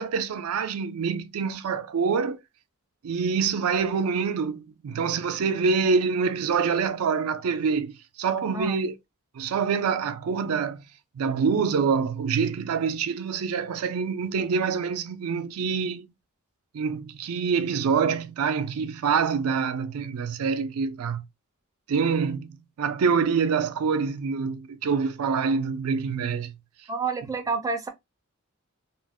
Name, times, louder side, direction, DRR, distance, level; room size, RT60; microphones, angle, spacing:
voice 1, 0.0-2.4 3.0-8.9 9.3-10.8 11.2-16.0 16.7-21.2 21.9-22.5 22.8-26.5, right 5 dB, 80° right, 0.4 m, -26 dB
voice 2, 26.9-27.9, right 4 dB, 15° right, 0.4 m, -29 dB
2.5 x 2.0 x 3.5 m
head